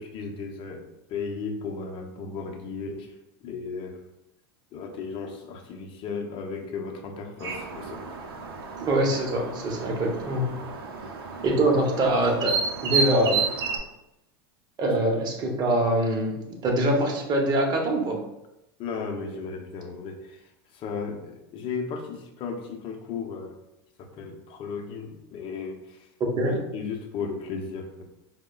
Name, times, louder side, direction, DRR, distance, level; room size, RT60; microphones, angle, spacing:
voice 1, 0.0-3.1 3.4-4.0 4.7-8.0 14.8-14.9 18.8-23.6 24.0-26.1 26.4-28.0, left 5 dB, 45° left, 3 dB, 0.6 m, -35 dB
sound 1, 7.4-13.8, right 5 dB, 85° right, 0.5 m, -31 dB
voice 2, 8.8-10.6 11.4-12.5 12.8-13.5 14.8-16.4 16.6-18.2 26.2-26.6, right 1 dB, 35° right, 1 dB, 0.8 m, -24 dB
4.6 x 2.1 x 2.3 m, 0.88 s
hypercardioid pair, 110°, 12 cm